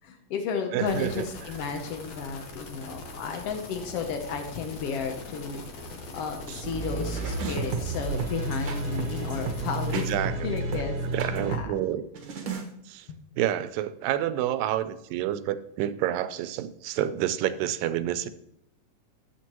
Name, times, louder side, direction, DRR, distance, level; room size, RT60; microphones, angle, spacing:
voice 1, 0.0-10.0 10.4-11.0 11.2-11.7 13.1-13.2, left 6 dB, 80° left, 5 dB, 1.3 m, -33 dB
voice 2, 0.7-1.3 6.5-6.6 7.4-7.6 9.9-10.3 10.7-10.8 11.1-12.1 12.9-13.1 13.4-18.3, right 12 dB, 85° right, 13 dB, 2.3 m, -29 dB
sound 1, 0.9-10.1, left 2 dB, 65° left, 2.6 m, -42 dB
sound 2, 6.6-11.6 12.1-12.6, right 3 dB, 60° right, 1.4 m, -31 dB
14.0 x 7.7 x 3.0 m, 0.78 s
omnidirectional pair, 3.9 m